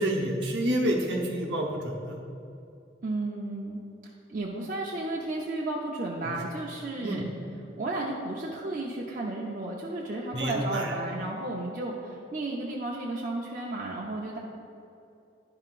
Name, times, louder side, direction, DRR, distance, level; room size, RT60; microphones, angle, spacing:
voice 1, 0.0-2.2 6.2-6.4 7.0-7.2 10.3-10.9, right 1 dB, 65° right, 0 dB, 1.0 m, -28 dB
voice 2, 3.0-3.8 4.3-7.2 7.8-14.4, right 2 dB, 45° right, -4 dB, 0.6 m, -33 dB
10.5 x 5.7 x 2.5 m, 2.6 s
head